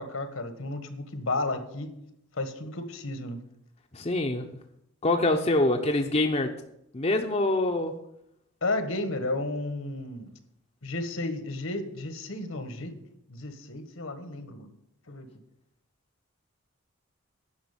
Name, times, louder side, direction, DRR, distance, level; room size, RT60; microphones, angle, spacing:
voice 1, 0.0-2.0 2.3-3.4 8.6-10.3 10.8-13.0 13.3-14.7 15.1-15.3, left 2 dB, 70° left, 8 dB, 1.5 m, -33 dB
voice 2, 3.9-4.4 5.0-6.5 6.9-7.9, left 2 dB, 30° left, 4 dB, 0.7 m, -25 dB
10.5 x 6.2 x 8.8 m, 0.80 s
head